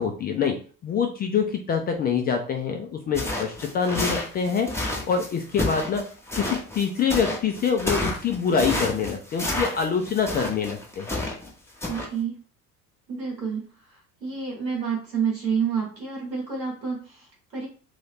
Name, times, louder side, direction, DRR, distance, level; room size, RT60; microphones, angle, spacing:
voice 1, 0.0-6.1 6.4-11.1, left 6 dB, 20° left, 4 dB, 0.3 m, -25 dB
sound 1, 3.1-11.5 11.8-12.1, left 1 dB, 5° left, 0.8 m, -30 dB
voice 2, 11.9-12.4 13.1-17.7, right 6 dB, 90° right, -3 dB, 1.3 m, -29 dB
2.7 x 2.7 x 3.4 m, 0.39 s
figure-of-eight pair, 65°, 49 cm